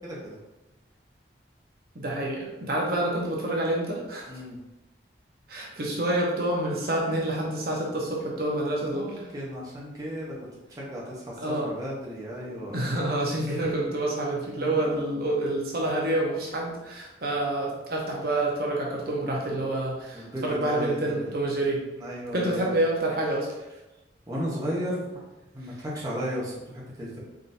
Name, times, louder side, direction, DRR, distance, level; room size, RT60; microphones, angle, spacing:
voice 1, 0.0-0.4 4.3-4.6 8.8-10.3 10.7-12.8 14.5-15.3 19.1-19.6 20.1-21.3 22.0-22.7 24.3-25.2 25.5-27.2, equal, 20° right, -6 dB, 0.8 m, -35 dB
voice 2, 1.9-4.3 5.5-9.1 11.4-11.7 12.7-21.8 22.3-23.5, right 1 dB, 55° right, -2 dB, 0.8 m, -28 dB
4.0 x 3.7 x 2.6 m, 0.98 s
head